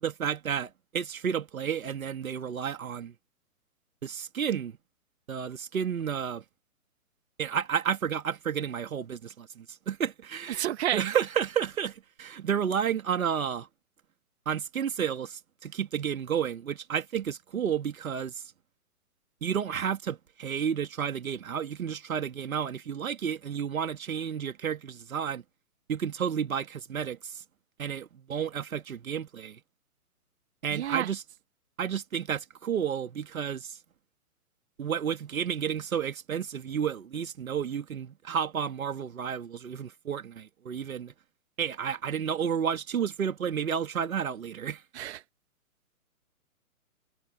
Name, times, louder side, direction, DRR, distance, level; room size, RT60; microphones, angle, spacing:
voice 1, 0.0-3.1 4.0-4.7 5.3-6.4 7.4-13.7 14.5-18.4 19.4-25.4 25.9-27.4 27.8-29.6 30.6-31.2 31.8-33.8 34.8-41.1 41.6-44.8, right 8 dB, 65° right, 2.1 m, -31 dB
voice 2, 10.5-11.1 30.7-31.1 44.9-45.2, right 12 dB, 45° right, 2.3 m, -30 dB
hypercardioid pair, 135°, 44 cm